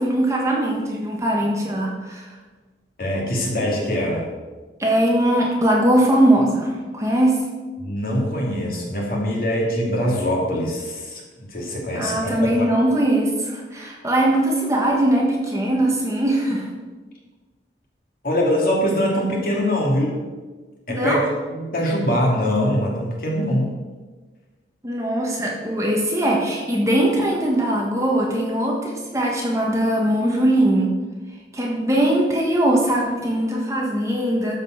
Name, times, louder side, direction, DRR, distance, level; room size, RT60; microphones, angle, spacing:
voice 1, 0.0-2.3 4.8-7.4 11.9-16.6 20.9-21.3 24.8-30.9 31.5-34.6, right 1 dB, 15° right, -2 dB, 1.5 m, -20 dB
voice 2, 3.0-4.3 7.8-12.7 18.2-20.2 20.9-21.2 21.5-23.7, equal, 50° left, -2 dB, 2.8 m, -23 dB
13.0 x 5.4 x 6.3 m, 1.3 s
head